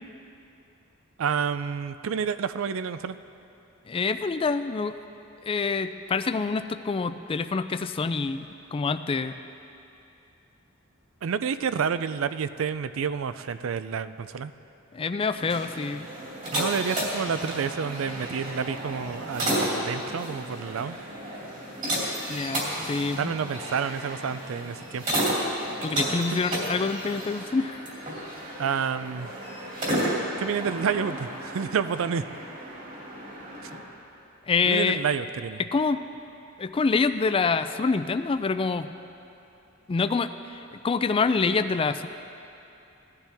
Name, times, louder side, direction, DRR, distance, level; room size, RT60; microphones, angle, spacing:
voice 1, 1.2-3.2 11.2-14.5 16.5-21.0 23.2-25.2 26.3-26.4 28.6-29.3 30.4-32.2 33.6-33.7 34.7-35.6, right 6 dB, 70° right, 12 dB, 0.4 m, -29 dB
voice 2, 3.9-4.9 5.5-9.3 14.9-16.1 22.3-23.3 25.8-27.8 34.5-35.0 35.6-36.0 36.6-38.9 39.9-42.1, left 4 dB, 25° left, 10 dB, 0.3 m, -26 dB
sound 1, 15.3-33.8, right 1 dB, 40° right, 2.9 m, -32 dB
17.0 x 11.5 x 3.5 m, 2.8 s
head